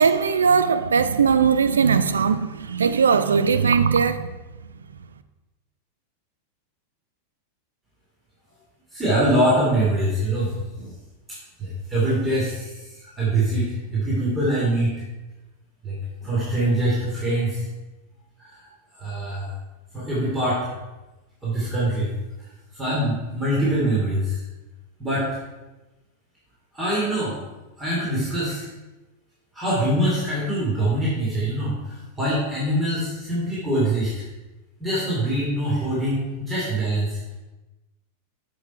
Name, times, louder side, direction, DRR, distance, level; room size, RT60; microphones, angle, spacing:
voice 1, 0.0-4.3, right 6 dB, 70° right, 0.5 m, -19 dB
voice 2, 8.9-10.9 11.6-15.0 15.8-16.0 16.2-17.6 18.6-18.7 19.0-19.5 19.9-20.7 21.4-22.1 22.7-24.4 25.0-25.3 26.7-27.4 27.8-28.7 29.5-34.2 34.8-37.2, right 1 dB, 10° right, 3.0 m, -24 dB
8.2 x 6.4 x 4.6 m
figure-of-eight pair, 90°, 0 cm